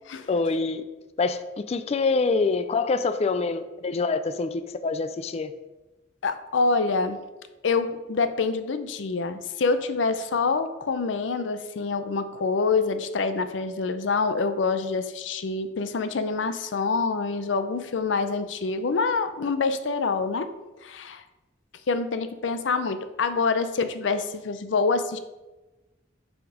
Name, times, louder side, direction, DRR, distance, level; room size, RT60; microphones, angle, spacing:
voice 1, 0.3-0.8 1.2-1.4 1.7-5.5, left 4 dB, 35° left, 11 dB, 0.3 m, -25 dB
voice 2, 6.2-7.2 7.6-20.5 20.8-21.2 21.9-25.2, left 4 dB, 90° left, 11 dB, 0.5 m, -26 dB
6.0 x 5.1 x 4.9 m, 1.1 s
head